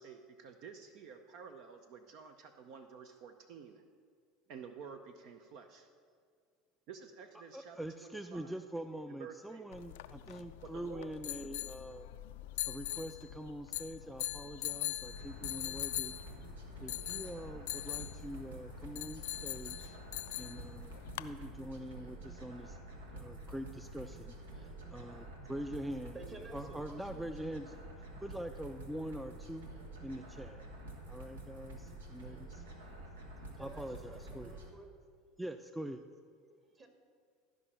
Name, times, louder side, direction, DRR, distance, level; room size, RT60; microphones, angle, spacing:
voice 1, 0.0-3.8 4.5-5.9 6.9-8.6 9.2-9.7 10.6-11.1, right 6 dB, 60° right, 7 dB, 0.6 m, -51 dB
voice 2, 7.3-12.1 12.7-16.2 16.8-19.9 20.4-22.8 23.1-26.2 26.5-27.7 28.2-29.7 30.0-30.6 31.1-32.6 33.6-34.5 35.4-36.0, right 1 dB, 5° right, 8 dB, 0.4 m, -44 dB
sound 1, 9.7-21.3, left 16 dB, 75° left, 0.3 m, -42 dB
sound 2, 15.0-34.7, right 1 dB, 90° right, 1.3 m, -49 dB
voice 3, 26.1-27.3 33.5-34.9 36.7-36.9, right 3 dB, 30° right, 4 dB, 1.7 m, -52 dB
13.0 x 5.1 x 5.7 m, 2.1 s
hypercardioid pair, 85°, 0 cm